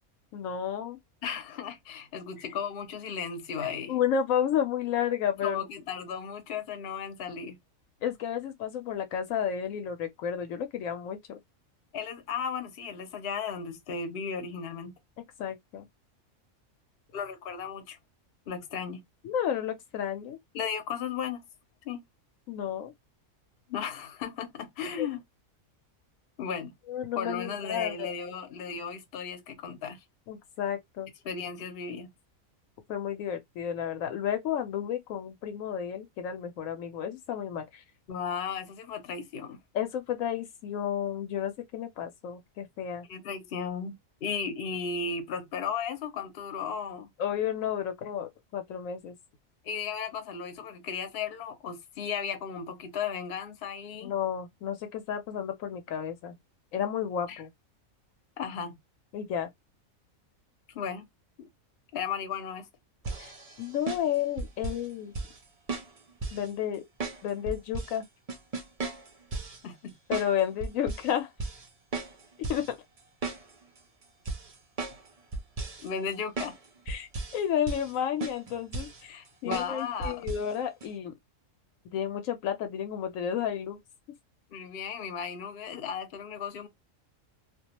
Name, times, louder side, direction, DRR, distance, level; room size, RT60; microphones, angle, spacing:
voice 1, 0.3-1.0 3.9-5.6 8.0-11.4 15.2-15.9 19.2-20.4 22.5-22.9 24.8-25.1 26.9-28.1 30.3-31.1 32.9-37.8 39.7-43.1 47.2-49.2 54.0-56.3 56.7-57.5 59.1-59.5 63.2-63.3 63.6-65.1 66.3-66.8 67.2-68.0 70.1-71.3 72.5-72.8 76.9-81.1 81.9-83.8, left 9 dB, 75° left, 1.0 m, -32 dB
voice 2, 1.2-3.9 5.4-7.6 11.9-14.9 17.1-18.0 18.5-19.0 20.5-21.4 21.8-22.0 23.7-25.2 26.4-26.7 27.2-30.0 31.2-32.1 38.1-39.6 43.1-47.1 49.6-54.1 57.3-57.4 58.4-58.8 60.7-61.1 61.9-62.7 69.6-70.0 75.8-76.6 79.1-80.3 84.5-86.7, left 6 dB, 55° left, 0.8 m, -35 dB
sound 1, 63.0-64.9 65.1-65.4 65.7-66.5 67.0-68.0 68.3-69.6 70.1-70.3 70.6-71.1 71.4-71.7 71.9-72.7 73.0-73.8 74.3-75.1 75.3-75.9 76.4-76.6 76.9-77.4 77.7-77.9 78.2-79.0 79.5-79.7 80.0-80.5 80.8-80.9, right 3 dB, 55° right, 0.4 m, -35 dB
2.3 x 2.2 x 2.8 m
omnidirectional pair, 1.4 m